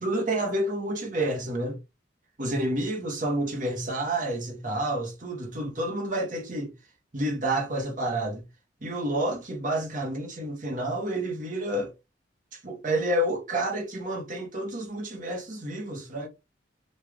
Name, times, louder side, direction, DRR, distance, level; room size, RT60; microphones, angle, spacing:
voice 1, 0.0-1.8 2.4-6.7 7.1-8.4 8.8-11.9 12.5-16.3, right 1 dB, 45° right, 1.0 m, -29 dB
3.1 x 2.4 x 3.5 m
head